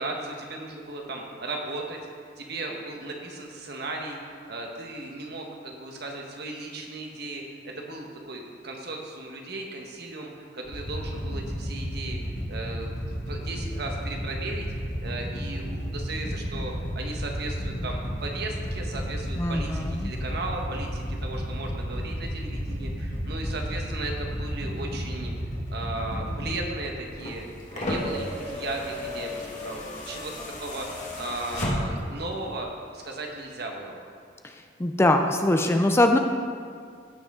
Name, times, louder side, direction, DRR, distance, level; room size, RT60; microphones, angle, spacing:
voice 1, 0.0-2.0 2.4-4.2 4.5-12.2 12.5-13.0 13.3-14.7 15.0-25.3 25.7-27.4 27.7-29.8 30.1-30.9 31.1-34.0, right 2 dB, 60° right, 1 dB, 1.3 m, -36 dB
sound 1, 10.6-26.6, equal, 90° left, 2.3 m, -32 dB
voice 2, 19.4-20.1 34.8-36.2, left 1 dB, 15° left, 5 dB, 0.4 m, -22 dB
sound 2, 27.1-32.2 33.4-33.5, left 1 dB, 45° left, 1.7 m, -33 dB
15.0 x 6.3 x 3.7 m, 2.2 s
head